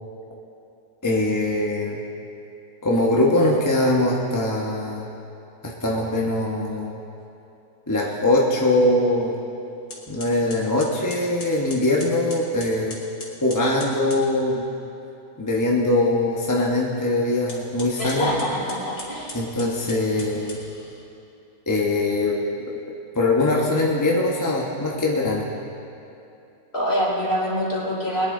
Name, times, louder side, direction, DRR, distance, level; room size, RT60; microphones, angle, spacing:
voice 1, 1.0-2.0 2.8-5.1 5.6-6.9 7.9-9.4 10.1-13.0 13.4-14.7 15.4-18.3 19.3-20.6 21.7-22.4 23.1-25.4, left 2 dB, 15° left, -3 dB, 1.0 m, -22 dB
sound 1, 9.5-9.6 9.9-14.3 17.4-21.0, left 2 dB, 90° left, 2.6 m, -40 dB
voice 2, 18.0-19.3 26.7-28.3, equal, 40° left, -5 dB, 3.4 m, -25 dB
21.5 x 10.5 x 3.8 m, 2.7 s
omnidirectional pair, 1.7 m